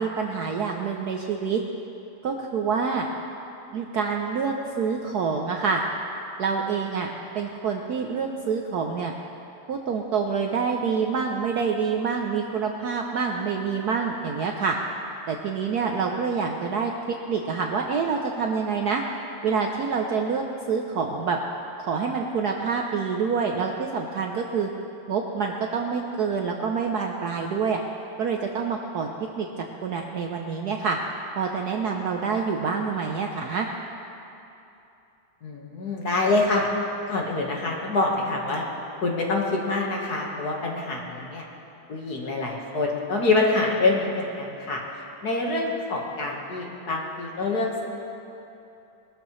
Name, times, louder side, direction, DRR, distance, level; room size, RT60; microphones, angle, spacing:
voice 1, 0.0-1.6 2.2-3.1 3.7-5.8 6.4-7.1 7.3-9.1 9.7-14.8 15.3-19.0 19.4-21.4 21.8-24.7 25.1-27.8 28.2-29.1 29.4-29.5 29.8-31.0 31.4-33.7, right 5 dB, 65° right, 2 dB, 1.0 m, -27 dB
voice 2, 35.4-36.7 37.1-38.7 39.0-41.5 41.9-44.8 45.2-47.8, left 3 dB, 50° left, -1 dB, 1.9 m, -26 dB
21.0 x 13.0 x 3.2 m, 2.9 s
omnidirectional pair, 2.3 m